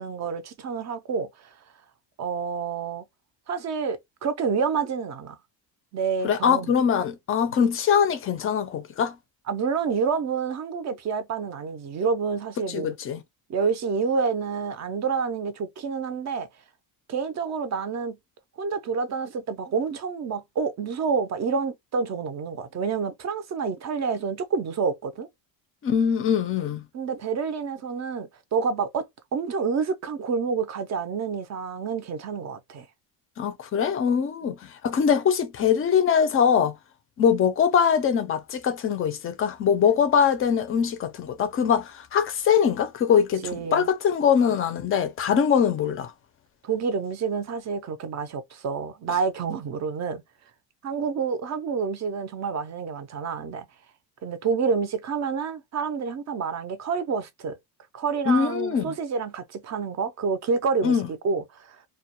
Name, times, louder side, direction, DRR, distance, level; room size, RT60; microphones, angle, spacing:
voice 1, 0.0-1.5 2.2-3.0 3.5-5.4 5.9-6.7 9.5-12.9 13.5-16.5 17.1-18.2 18.6-25.3 26.9-29.1 29.3-32.9 34.4-34.5 43.4-43.9 44.5-44.6 46.6-50.2 50.8-53.7 54.2-57.6 57.9-61.8, right 5 dB, 40° right, 0.5 m, -28 dB
voice 2, 6.2-9.2 12.7-13.2 25.8-26.8 33.4-36.8 37.2-46.1 58.3-58.9 60.8-61.1, left 7 dB, 30° left, 0.4 m, -22 dB
2.2 x 2.1 x 2.8 m
cardioid pair, 120°, 46 cm